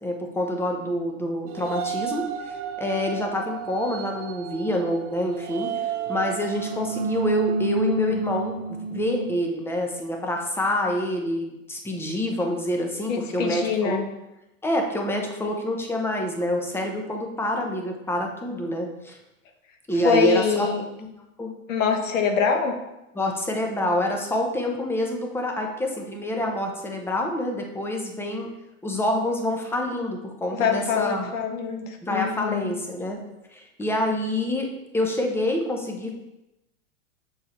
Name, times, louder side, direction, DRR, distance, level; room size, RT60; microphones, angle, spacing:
voice 1, 0.0-5.7 6.1-14.0 14.6-19.2 19.9-20.7 21.0-21.1 21.4-21.5 23.1-28.5 28.8-31.3 32.0-33.2 33.5-36.1, left 1 dB, 5° left, 2 dB, 0.8 m, -27 dB
sound 1, 1.5-9.4, right 5 dB, 60° right, 0.8 m, -30 dB
voice 2, 13.1-14.0 20.0-20.8 21.7-22.7 30.5-32.7, left 5 dB, 70° left, 4 dB, 1.3 m, -24 dB
6.7 x 4.8 x 4.2 m, 0.93 s
hypercardioid pair, 125°, 40 cm